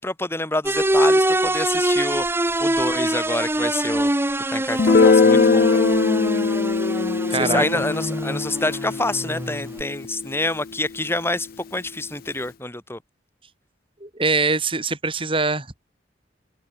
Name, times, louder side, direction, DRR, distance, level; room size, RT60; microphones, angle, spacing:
voice 1, 0.0-2.2 2.6-4.1 4.5-5.7 7.3-13.0, left 2 dB, 15° left, 4.4 m, -27 dB
sound 1, 0.7-9.8, right 1 dB, 15° right, 1.1 m, -24 dB
Guitar, 4.8-10.3, left 4 dB, 50° left, 0.4 m, -20 dB
voice 2, 7.3-7.8 14.0-15.9, right 3 dB, 30° right, 3.9 m, -23 dB
open air
head